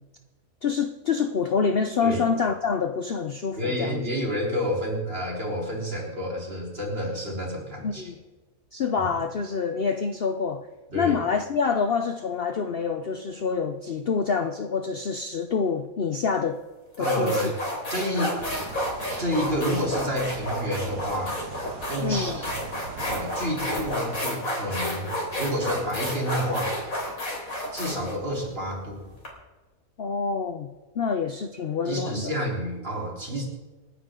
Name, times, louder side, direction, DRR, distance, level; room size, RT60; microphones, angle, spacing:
voice 1, 0.6-4.0 7.8-8.2 8.7-10.6 10.9-16.6 17.0-17.5 22.0-22.4 30.0-30.7 31.0-32.3, left 5 dB, 50° left, 6 dB, 0.8 m, -26 dB
voice 2, 3.6-8.1 8.9-9.1 10.9-11.2 17.0-17.6 17.9-18.4 19.2-21.4 21.9-22.5 23.0-25.1 25.4-27.0 27.7-29.1 31.9-33.5, equal, 40° right, -2 dB, 4.0 m, -29 dB
sound 1, 16.3-16.5 16.9-29.3, left 1 dB, 70° left, 4.2 m, -31 dB
sound 2, 18.4-24.2, right 7 dB, 90° right, 1.4 m, -40 dB
28.0 x 9.8 x 3.8 m, 1.2 s
omnidirectional pair, 1.5 m